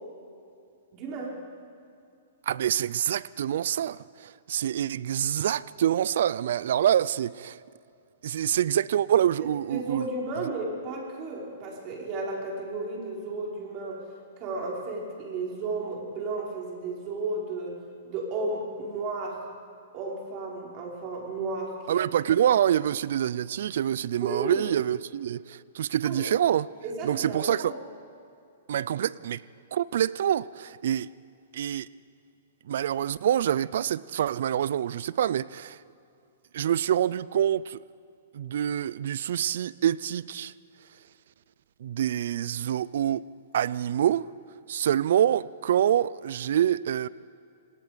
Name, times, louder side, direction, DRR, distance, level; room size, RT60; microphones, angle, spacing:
voice 1, 0.9-1.4 9.7-14.0 14.4-17.8 18.0-19.5 19.9-22.0 22.4-22.5 24.2-24.7 26.0-26.2 26.8-27.8, right 3 dB, 35° right, 5.2 m, -33 dB
voice 2, 2.5-7.6 8.2-10.1 21.9-26.7 27.0-27.7 28.7-29.4 29.7-31.1 31.5-31.9 32.7-35.8 36.5-37.8 38.3-40.5 41.8-44.3 44.7-47.1, right 10 dB, 65° right, 0.5 m, -26 dB
27.0 x 19.0 x 5.2 m
hypercardioid pair, 155°, 0 cm